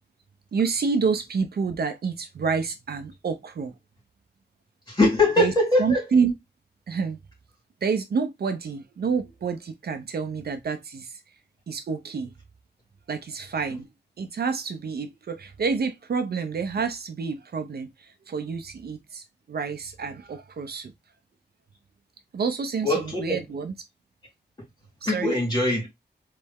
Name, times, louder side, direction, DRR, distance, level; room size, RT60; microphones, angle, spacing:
voice 1, 0.5-3.7 5.4-5.5 5.8-6.3 6.9-7.2 7.8-11.2 11.7-12.3 13.1-13.9 14.2-20.9 22.3-23.7 25.0-25.4, right 5 dB, 65° right, 0.7 m, -28 dB
voice 2, 4.9-6.0 22.8-23.4 25.0-25.9, left 2 dB, 25° left, 3.1 m, -22 dB
4.2 x 3.3 x 3.5 m
wide cardioid pair, 180°, 18 cm